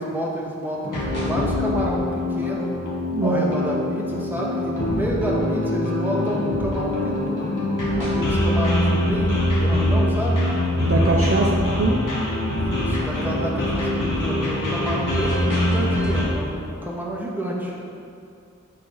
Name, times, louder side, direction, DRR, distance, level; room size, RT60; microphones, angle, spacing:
voice 1, 0.0-2.7 3.2-7.5 8.0-10.4 12.6-17.7, right 1 dB, 5° right, -4 dB, 1.7 m, -29 dB
sound 1, 0.8-16.2, left 1 dB, 75° left, 1.9 m, -23 dB
voice 2, 3.1-3.6 10.8-12.1, right 2 dB, 45° right, -1 dB, 0.7 m, -22 dB
9.7 x 4.2 x 4.8 m, 2.4 s
cardioid pair, 40°, 31 cm